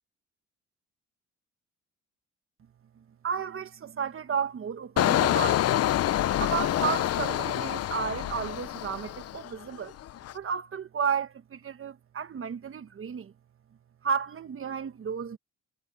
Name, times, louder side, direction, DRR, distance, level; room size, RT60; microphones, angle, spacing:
voice 1, 2.9-5.9 6.4-10.0 10.3-13.3 14.0-15.4, right 7 dB, 45° right, 1.4 m, -33 dB
Engine, 5.0-9.6 10.0-10.3, left 12 dB, 55° left, 0.6 m, -27 dB
cardioid pair, 90°, 30 cm